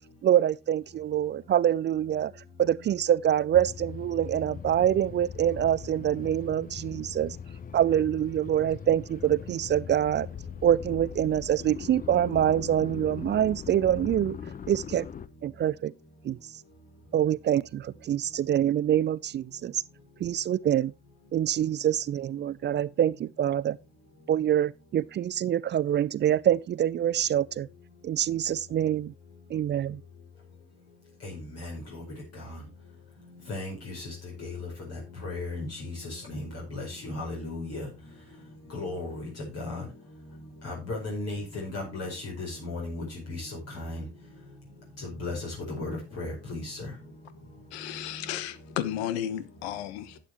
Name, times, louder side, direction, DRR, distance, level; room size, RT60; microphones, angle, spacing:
voice 1, 0.2-2.3 2.6-7.4 7.7-10.3 10.6-14.4 14.7-15.1 15.4-15.9 16.2-16.4 17.1-19.8 20.2-20.9 21.3-23.8 24.3-27.7 28.0-29.1 29.5-30.0, right 10 dB, 35° right, 0.5 m, -25 dB
sound 1, 3.5-15.3, left 7 dB, 25° left, 0.7 m, -40 dB
voice 2, 31.2-32.0 32.3-32.6 33.5-37.9 38.7-39.8 40.6-44.1 45.0-46.9, left 2 dB, 50° left, 5.0 m, -36 dB
voice 3, 47.7-50.2, left 11 dB, 75° left, 1.0 m, -33 dB
11.5 x 8.9 x 3.0 m
hypercardioid pair, 55°, 33 cm